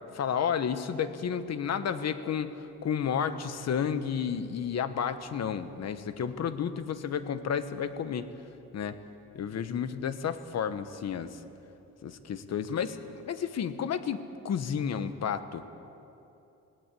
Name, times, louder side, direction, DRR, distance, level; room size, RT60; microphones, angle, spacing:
voice 1, 0.1-8.3 8.7-9.0 9.3-11.4 12.0-15.6, left 7 dB, 60° left, 11 dB, 1.3 m, -31 dB
18.5 x 17.5 x 8.4 m, 2.8 s
cardioid pair, 90°, 30 cm